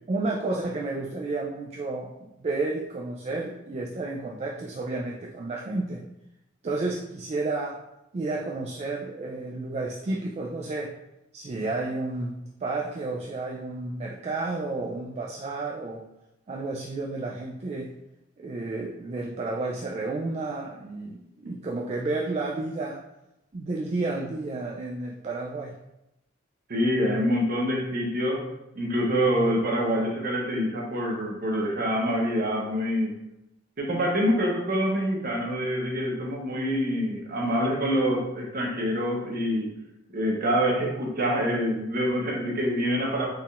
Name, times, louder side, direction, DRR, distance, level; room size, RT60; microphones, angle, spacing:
voice 1, 0.1-6.0 6.6-7.8 8.1-10.9 11.3-16.0 16.5-17.9 18.4-23.0 23.5-25.7, right 2 dB, 35° right, -1 dB, 0.3 m, -31 dB
voice 2, 26.7-33.2 33.8-39.7 40.1-43.3, equal, 50° right, -1 dB, 0.8 m, -26 dB
4.4 x 3.5 x 2.4 m, 0.88 s
head